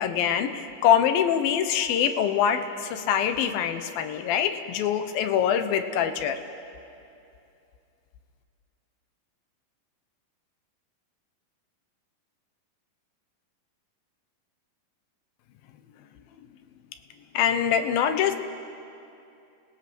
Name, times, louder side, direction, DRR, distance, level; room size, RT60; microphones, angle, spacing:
voice 1, 0.0-6.4 17.3-18.4, left 9 dB, 80° left, 8 dB, 2.7 m, -24 dB
29.5 x 18.0 x 6.1 m, 2.6 s
omnidirectional pair, 4.3 m